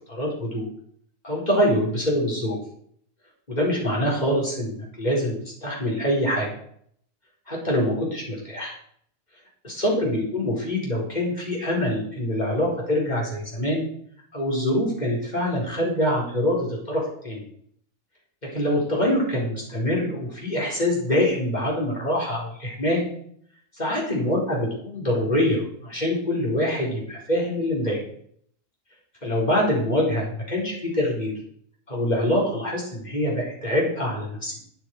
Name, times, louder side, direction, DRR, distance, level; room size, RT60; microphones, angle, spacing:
voice 1, 0.1-0.6 1.2-2.6 3.5-5.4 5.6-6.5 7.5-8.7 9.6-13.9 14.3-17.4 18.5-23.1 23.8-28.0 29.2-31.3 31.9-34.6, left 1 dB, 35° left, -3 dB, 4.7 m, -24 dB
12.5 x 8.8 x 4.9 m, 0.64 s
omnidirectional pair, 1.4 m